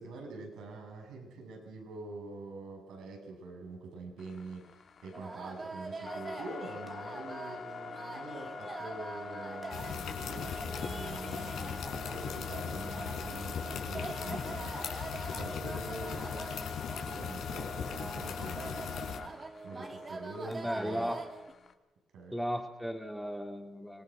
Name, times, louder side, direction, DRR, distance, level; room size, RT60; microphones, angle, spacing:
voice 1, 0.0-4.6 5.0-8.5 8.8-14.7 15.3-19.3 19.6-21.1 22.1-22.3, right 3 dB, 80° right, 2 dB, 6.7 m, -45 dB
sound 1, 4.2-21.7, left 6 dB, 50° left, 2.2 m, -45 dB
sound 2, 5.1-21.5, right 3 dB, 30° right, 2.3 m, -44 dB
sound 3, 9.7-19.2, left 7 dB, 75° left, 4.4 m, -39 dB
voice 2, 20.4-21.2 22.3-24.0, equal, ahead, 4 dB, 3.1 m, -36 dB
25.5 x 19.5 x 6.1 m, 1.1 s
cardioid pair, 90°, 0 cm